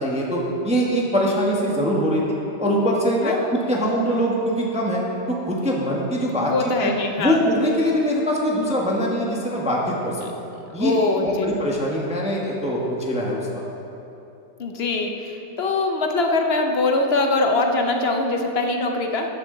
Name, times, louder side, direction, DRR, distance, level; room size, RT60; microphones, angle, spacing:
voice 1, 0.0-3.4 3.7-5.0 5.3-6.5 6.8-6.9 7.2-10.2 10.7-13.4, equal, 5° right, -3 dB, 1.1 m, -23 dB
voice 2, 6.4-7.4 10.8-11.6 14.6-19.4, left 2 dB, 50° left, 3 dB, 0.8 m, -22 dB
14.0 x 9.7 x 3.9 m, 2.9 s
omnidirectional pair, 1.8 m